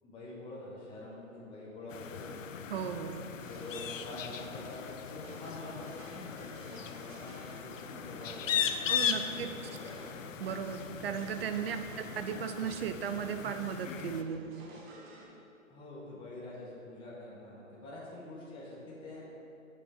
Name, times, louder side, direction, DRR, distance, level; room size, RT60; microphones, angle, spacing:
voice 1, 0.0-2.4 3.5-10.2 11.9-12.1 15.7-19.3, left 1 dB, 10° left, -6 dB, 1.2 m, -46 dB
sound 1, 1.9-14.2, left 8 dB, 65° left, 0.6 m, -38 dB
voice 2, 2.7-3.3 8.9-9.5 10.4-14.7, right 7 dB, 45° right, 8 dB, 0.6 m, -36 dB
sound 2, 3.4-15.2, right 2 dB, 25° right, 1.0 m, -53 dB
6.9 x 6.4 x 5.1 m, 2.8 s
hypercardioid pair, 130°, 42 cm